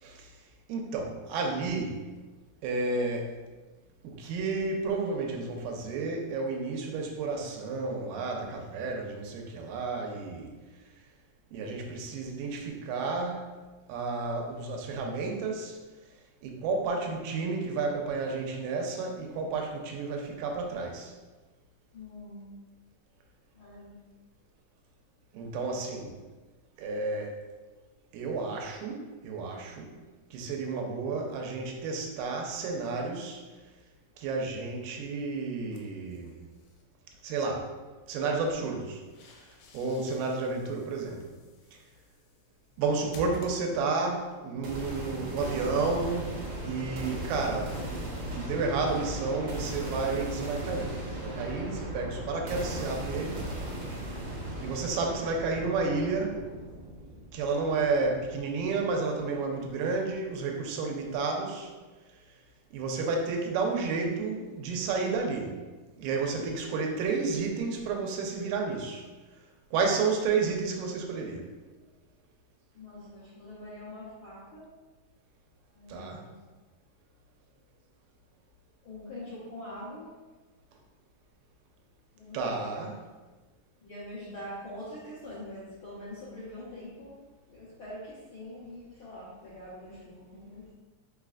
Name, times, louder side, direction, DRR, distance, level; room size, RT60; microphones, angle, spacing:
voice 1, 0.7-2.0 2.6-3.3 4.0-10.6 11.5-13.5 13.9-15.8 16.4-21.1 25.3-26.1 26.8-27.3 28.1-29.9 30.3-33.4 34.2-36.3 37.2-37.7 38.1-39.0 39.7-41.2 42.8-46.3 46.6-53.5 54.6-56.3 57.3-61.7 62.7-65.5 66.0-69.1 69.7-71.4 75.9-76.2 82.3-82.9, right 4 dB, 90° right, 1 dB, 2.3 m, -31 dB
voice 2, 21.9-22.6 23.5-24.0 25.6-25.9 72.7-74.7 75.7-76.4 78.8-80.1 82.1-82.9 83.8-87.2 87.5-90.7, left 1 dB, 75° left, -10 dB, 1.2 m, -44 dB
sound 1, 35.7-36.8 38.7-44.1, right 1 dB, 90° left, 2.2 m, -51 dB
sound 2, 44.6-58.6, right 1 dB, 70° right, 1.3 m, -37 dB
5.1 x 4.1 x 2.4 m, 1.3 s
omnidirectional pair, 3.8 m